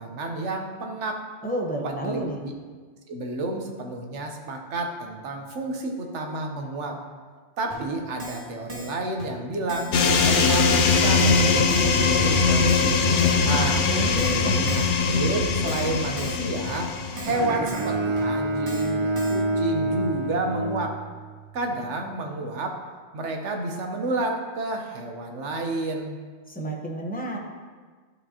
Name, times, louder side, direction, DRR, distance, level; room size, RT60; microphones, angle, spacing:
voice 1, 0.0-1.2 1.8-2.5 3.1-7.0 7.6-13.8 14.4-21.0 21.5-22.8 23.1-26.2, right 2 dB, 75° right, 3 dB, 1.2 m, -30 dB
voice 2, 1.4-2.4 13.9-14.6 26.5-27.4, right 1 dB, 10° left, -1 dB, 0.8 m, -30 dB
Keyboard (musical), 7.7-7.8 8.2-8.4 8.7-8.9 9.2-9.3 9.7-9.9 10.2-10.4 10.7-10.8 11.2-11.4 11.7-11.9 12.2-12.3 12.7-12.9 13.2-13.4 13.7-13.8 14.2-14.4 14.7-14.9 15.2-15.3 15.7-15.9 16.2-16.4 16.7-16.8 17.2-17.4 17.7-17.9 18.2-18.3 18.7-18.9 19.2-19.4, right 1 dB, 30° right, 1.8 m, -38 dB
sound 1, 9.9-17.5, left 4 dB, 55° left, 0.7 m, -21 dB
Bowed string instrument, 17.3-21.5, right 2 dB, 50° right, 0.3 m, -27 dB
11.5 x 5.1 x 2.8 m, 1.5 s
omnidirectional pair, 1.2 m